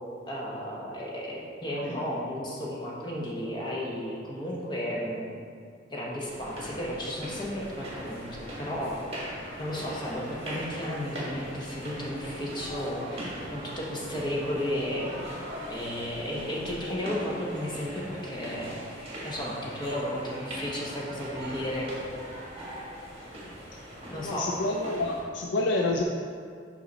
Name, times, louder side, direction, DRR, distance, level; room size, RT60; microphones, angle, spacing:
voice 1, 0.3-5.4 5.9-9.0 9.6-15.1 15.7-18.8 19.2-21.9 24.1-24.5, equal, 25° left, -4 dB, 1.0 m, -33 dB
sound 1, 6.2-25.2, equal, 30° right, 1.5 m, -40 dB
voice 2, 24.1-26.0, left 2 dB, 75° left, 1 dB, 0.4 m, -28 dB
5.7 x 5.4 x 4.1 m, 2.2 s
head